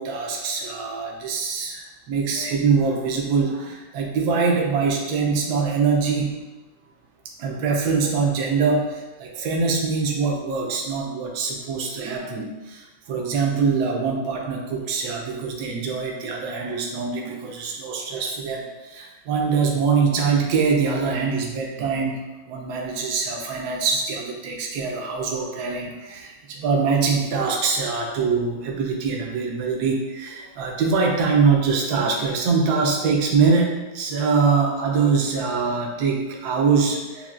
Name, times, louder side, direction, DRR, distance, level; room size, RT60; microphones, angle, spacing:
voice 1, 0.0-6.4 7.4-37.3, right 5 dB, 65° right, 0 dB, 1.1 m, -23 dB
6.9 x 2.3 x 2.4 m, 1.1 s
omnidirectional pair, 2.0 m